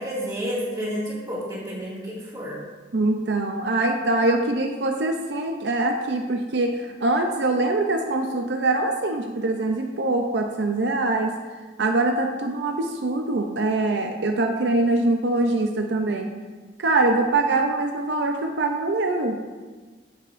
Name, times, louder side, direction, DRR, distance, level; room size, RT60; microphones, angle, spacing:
voice 1, 0.0-2.6, equal, 20° right, -7 dB, 2.1 m, -30 dB
voice 2, 2.9-11.3 11.8-16.3 16.8-19.5, right 2 dB, 70° right, 3 dB, 0.5 m, -23 dB
9.1 x 7.5 x 2.6 m, 1.4 s
head